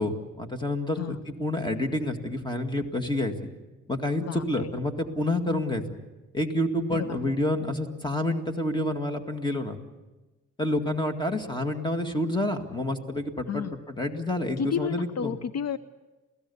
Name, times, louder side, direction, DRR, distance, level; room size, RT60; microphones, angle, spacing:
voice 1, 0.0-3.4 3.9-5.8 6.3-9.8 10.6-15.3, left 1 dB, 15° left, 5 dB, 2.1 m, -28 dB
voice 2, 4.2-4.7 5.5-5.7 6.9-7.4 13.5-13.7 14.6-15.8, left 8 dB, 55° left, 13 dB, 0.6 m, -32 dB
28.0 x 17.0 x 7.1 m, 1.1 s
cardioid pair, 105°, 31 cm